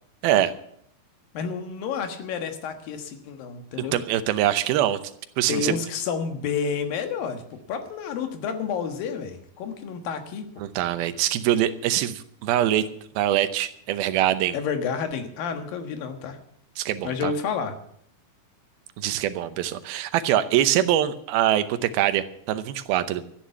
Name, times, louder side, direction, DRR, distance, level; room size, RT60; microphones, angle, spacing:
voice 1, 0.2-0.5 3.9-5.0 5.4-5.8 10.6-12.9 13.2-14.6 16.8-17.3 19.0-23.3, right 12 dB, 90° right, 11 dB, 2.8 m, -23 dB
voice 2, 1.3-4.0 5.5-10.6 14.5-16.4 17.0-17.8, left 6 dB, 75° left, 7 dB, 3.2 m, -30 dB
13.5 x 10.0 x 8.2 m, 0.68 s
omnidirectional pair, 4.2 m